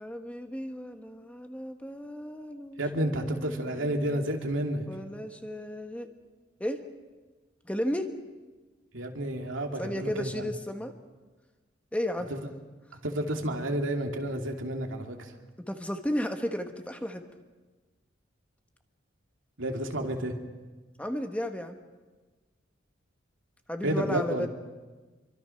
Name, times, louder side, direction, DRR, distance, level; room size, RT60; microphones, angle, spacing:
voice 1, 0.0-4.3 4.9-6.1 6.6-6.8 7.6-8.1 9.8-10.9 11.9-12.3 15.6-17.2 21.0-21.8 23.7-24.5, equal, 5° left, 6 dB, 1.3 m, -34 dB
voice 2, 2.8-4.8 8.9-10.5 12.3-12.4 13.0-15.3 19.6-20.3 23.8-24.5, right 1 dB, 80° right, 3 dB, 2.6 m, -30 dB
26.5 x 24.0 x 5.9 m, 1.3 s
head